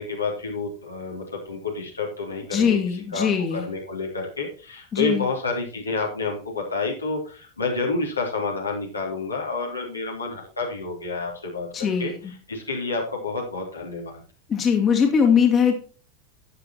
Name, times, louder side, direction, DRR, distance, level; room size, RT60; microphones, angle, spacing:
voice 1, 0.0-11.7 12.0-14.2, left 3 dB, 80° left, -1 dB, 3.7 m, -29 dB
voice 2, 2.5-3.7 4.9-5.3 11.7-12.3 14.5-15.8, left 7 dB, 25° left, 2 dB, 2.2 m, -21 dB
12.5 x 9.8 x 3.0 m, 0.38 s
figure-of-eight pair, 85°, 0 cm